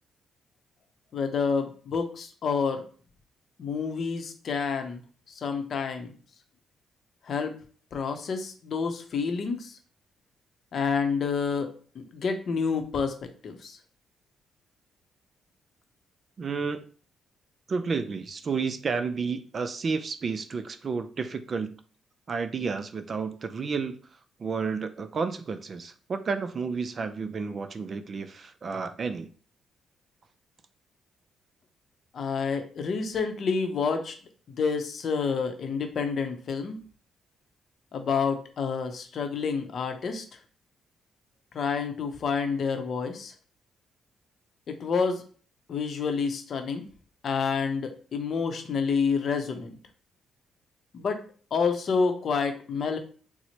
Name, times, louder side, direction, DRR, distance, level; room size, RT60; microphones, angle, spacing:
voice 1, 1.1-2.8 3.6-5.0 5.3-6.1 7.3-7.5 7.9-9.8 10.7-13.8 32.1-34.1 34.5-36.8 37.9-40.2 41.5-43.3 44.7-45.2 45.7-46.8 47.2-49.8 50.9-51.2 51.5-53.0, left 5 dB, 55° left, 0.6 m, -28 dB
voice 2, 16.4-16.8 17.7-21.7 22.3-24.0 24.4-29.3, right 5 dB, 45° right, 0.3 m, -31 dB
4.3 x 2.0 x 2.9 m
cardioid pair, 90°, 0 cm